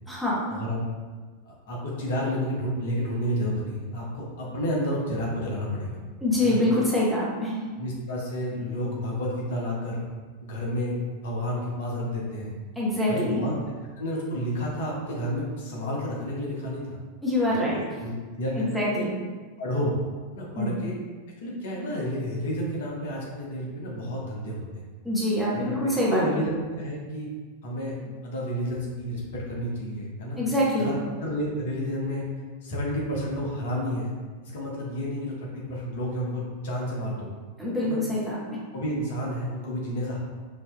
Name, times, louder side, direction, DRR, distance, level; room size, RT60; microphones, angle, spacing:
voice 1, 0.1-0.4 6.2-7.6 12.8-13.4 17.2-17.8 18.6-19.1 20.6-20.7 25.0-26.4 30.4-30.9 37.6-38.6, left 1 dB, ahead, -7 dB, 1.0 m, -25 dB
voice 2, 1.4-6.0 6.4-6.6 7.8-10.0 10.4-11.0 11.2-12.6 13.1-13.6 14.0-17.0 17.5-18.6 18.9-19.0 19.6-19.9 20.3-20.9 21.4-24.8 25.5-27.3 27.6-30.4 30.8-32.2 32.6-34.1 34.4-37.3 37.8-38.0 38.7-40.2, equal, 55° left, -4 dB, 0.9 m, -30 dB
5.5 x 2.8 x 2.2 m, 1.4 s
figure-of-eight pair, 90°, 0 cm